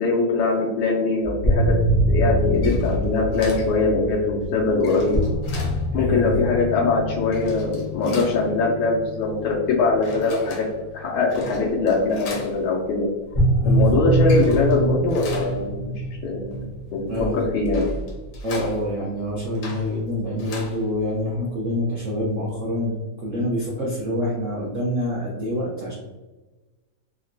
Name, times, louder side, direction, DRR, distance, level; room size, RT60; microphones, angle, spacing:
voice 1, 0.0-1.8 2.1-5.2 5.9-10.7 10.9-13.1 13.6-16.6 16.9-17.9, left 3 dB, 85° left, -3 dB, 1.4 m, -22 dB
sound 1, 1.2-11.4 13.3-18.4, right 1 dB, 45° left, 0.3 m, -25 dB
sound 2, 2.4-21.4, left 1 dB, 65° left, 1.2 m, -40 dB
voice 2, 5.9-6.4 13.6-13.8 17.1-17.4 18.4-25.9, left 1 dB, 75° right, -4 dB, 0.7 m, -26 dB
3.8 x 2.2 x 2.5 m, 1.2 s
omnidirectional pair, 2.1 m